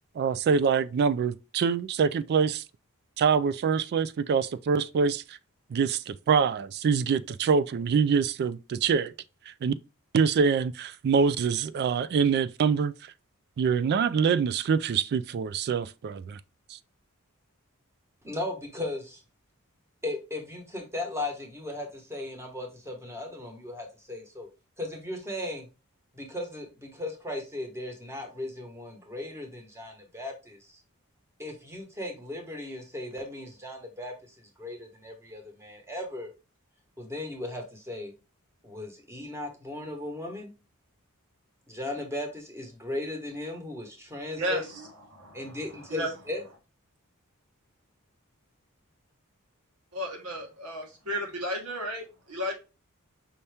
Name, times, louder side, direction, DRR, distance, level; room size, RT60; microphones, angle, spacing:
voice 1, 0.2-2.6 3.2-5.4 5.7-9.1 9.5-9.7 10.1-13.1 13.6-16.4 16.7-16.8, right 6 dB, 50° right, 0.3 m, -25 dB
voice 2, 18.2-19.2 20.0-24.5 24.8-25.7 26.1-30.6 31.4-34.1 34.6-36.3 37.0-38.1 38.6-40.5 41.7-44.6 45.3-46.4, left 2 dB, 10° right, 1.2 m, -36 dB
voice 3, 44.4-46.1 49.9-52.5, equal, 85° right, 1.6 m, -34 dB
5.4 x 2.8 x 3.4 m
head